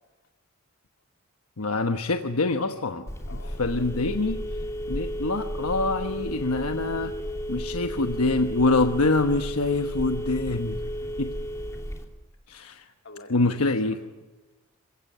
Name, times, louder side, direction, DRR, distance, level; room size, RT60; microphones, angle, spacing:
voice 1, 1.6-3.1 3.6-4.4 4.9-7.1 7.5-10.8 11.2-11.3 12.5-12.8 13.3-14.0, left 3 dB, 85° left, 1.1 m, -25 dB
Telephone, 3.1-12.0, equal, 15° left, 3.0 m, -33 dB
voice 2, 3.2-3.6 10.7-11.2 11.7-11.8 12.5-14.0, left 2 dB, 60° left, 3.1 m, -49 dB
27.0 x 16.5 x 9.9 m
head